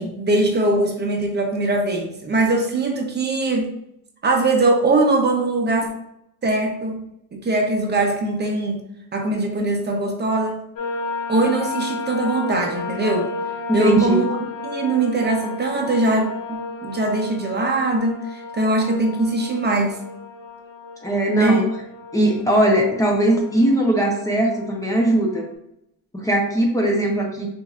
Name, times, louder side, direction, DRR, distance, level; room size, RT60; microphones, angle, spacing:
voice 1, 0.0-3.7 4.2-5.9 6.4-7.0 7.3-8.8 9.1-10.6 11.3-13.3 13.7-14.4 14.6-20.0 21.4-21.6, right 2 dB, 30° right, 2 dB, 0.7 m, -21 dB
sound 1, 10.8-25.5, left 4 dB, 70° left, 1.4 m, -33 dB
voice 2, 13.7-14.2 21.0-21.7 22.1-25.5 26.1-27.5, right 1 dB, 10° left, -1 dB, 0.8 m, -19 dB
6.3 x 2.7 x 2.4 m, 0.79 s
cardioid pair, 125°, 36 cm